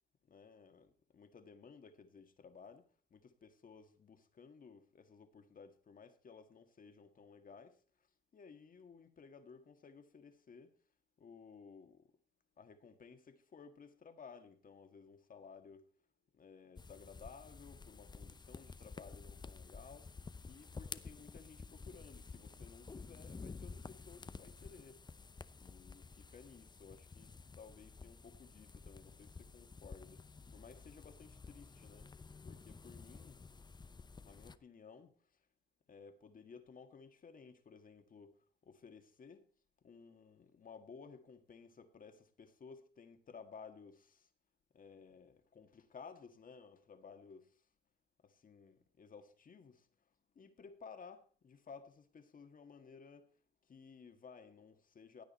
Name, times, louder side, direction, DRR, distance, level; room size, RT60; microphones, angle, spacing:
voice 1, 0.2-10.8 11.2-12.1 12.6-15.9 16.3-25.0 25.6-33.4 34.2-35.5 35.9-39.5 39.8-44.3 44.7-47.7 48.2-55.2, left 5 dB, 45° left, 1.7 m, -57 dB
sound 1, 16.8-34.6, left 4 dB, 20° left, 0.7 m, -52 dB
16.0 x 9.0 x 4.3 m
cardioid pair, 90°, 20 cm